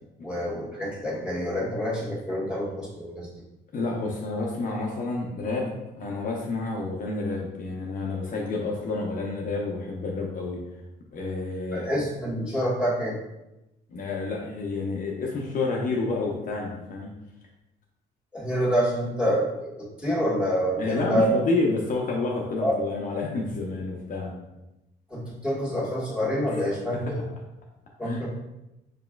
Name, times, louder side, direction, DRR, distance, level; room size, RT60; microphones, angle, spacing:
voice 1, 0.2-3.3 11.7-13.2 18.3-19.7 20.0-21.3 22.6-22.7 25.1-27.2 28.0-28.3, equal, 5° right, -6 dB, 1.5 m, -27 dB
voice 2, 3.7-10.6 11.1-11.9 13.9-17.1 20.8-24.3 26.5-26.6 27.0-27.1 28.0-28.2, left 3 dB, 45° left, -2 dB, 0.7 m, -29 dB
4.7 x 3.0 x 2.3 m, 0.94 s
cardioid pair, 95°, 20 cm